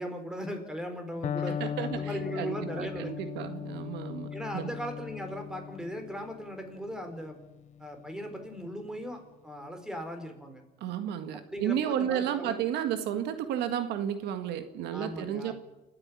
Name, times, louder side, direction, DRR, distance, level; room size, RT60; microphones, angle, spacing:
voice 1, 0.0-3.3 4.3-7.4 7.8-10.6 11.3-12.6 14.9-15.5, equal, 5° right, 5 dB, 4.3 m, -38 dB
Electric guitar, 1.2-9.1, left 8 dB, 45° left, 0.7 m, -39 dB
voice 2, 1.5-4.3 4.5-4.7 10.8-15.5, right 10 dB, 85° right, 9 dB, 1.8 m, -32 dB
29.0 x 9.8 x 9.7 m, 1.0 s
cardioid pair, 110°, 17 cm